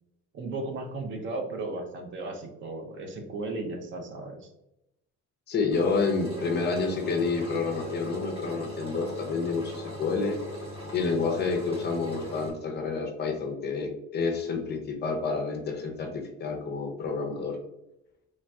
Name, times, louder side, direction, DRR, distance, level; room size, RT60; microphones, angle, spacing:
voice 1, 0.3-4.5, right 2 dB, 40° right, 4 dB, 0.5 m, -35 dB
voice 2, 5.5-10.4 10.9-17.6, left 4 dB, 35° left, 3 dB, 0.5 m, -29 dB
Engine, 5.7-12.5, right 1 dB, 20° right, 1.0 m, -39 dB
3.1 x 2.6 x 2.2 m, 0.87 s
cardioid pair, 155°, 29 cm